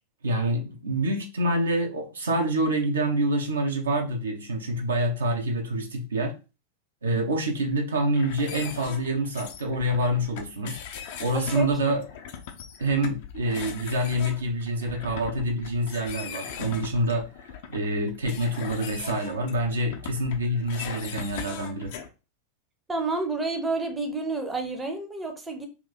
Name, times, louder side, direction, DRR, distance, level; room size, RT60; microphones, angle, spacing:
voice 1, 0.2-6.3 7.0-10.8 11.2-12.0 12.8-17.3 17.7-21.9, right 1 dB, 70° right, 0.7 m, -26 dB
sound 1, 8.1-22.1, left 7 dB, 50° left, 0.5 m, -40 dB
voice 2, 11.5-11.9 22.9-25.7, right 3 dB, 10° right, 0.6 m, -30 dB
3.0 x 2.6 x 3.8 m
figure-of-eight pair, 90°, 0 cm